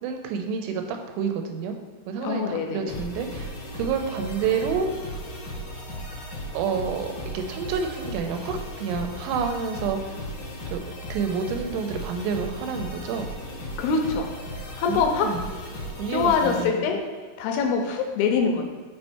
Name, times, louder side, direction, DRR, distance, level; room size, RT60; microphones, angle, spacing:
voice 1, 0.0-1.8 2.1-4.9 6.5-7.1 7.3-10.1 10.7-10.8 11.1-13.3 14.9-15.5 16.0-17.0, right 6 dB, 90° right, 5 dB, 2.8 m, -29 dB
voice 2, 2.2-2.9 13.8-14.3 14.8-15.3 16.1-17.0 17.4-18.6, left 5 dB, 80° left, 3 dB, 2.4 m, -24 dB
sound 1, 2.9-16.6, equal, 65° left, 1.6 m, -36 dB
6.1 x 4.4 x 4.2 m, 1.4 s
omnidirectional pair, 4.9 m